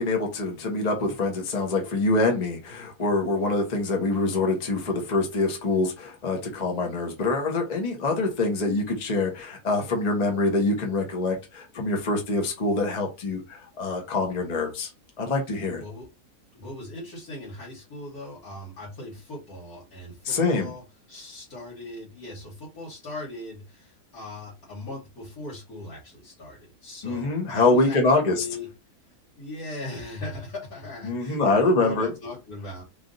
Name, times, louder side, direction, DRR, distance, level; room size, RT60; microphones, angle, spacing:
voice 1, 0.0-14.9 15.2-15.8 20.2-20.7 27.0-28.4 31.0-32.1, left 3 dB, 30° left, 0.9 m, -25 dB
voice 2, 16.5-20.8 21.1-28.0 28.3-28.7 29.4-32.8, left 1 dB, 75° left, 1.8 m, -39 dB
3.3 x 2.6 x 3.8 m
omnidirectional pair, 1.6 m